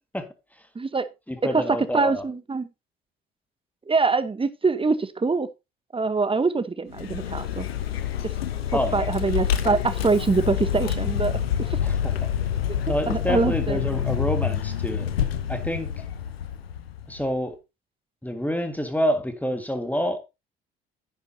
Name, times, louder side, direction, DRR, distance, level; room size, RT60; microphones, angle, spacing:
voice 1, 0.7-1.1 1.5-2.7 3.9-5.5 5.9-7.7 8.2-8.3 8.9-11.3 11.6-11.8 13.1-13.8, right 4 dB, 20° right, 1.0 m, -24 dB
voice 2, 1.3-2.2 8.7-9.1 11.8-12.3 12.9-15.1 15.5-15.9 17.1-17.6 18.2-20.2, equal, 5° left, 1.8 m, -27 dB
Vehicle, 6.9-17.3, left 9 dB, 80° left, 0.8 m, -27 dB
10.0 x 9.2 x 2.8 m
figure-of-eight pair, 50°, 30 cm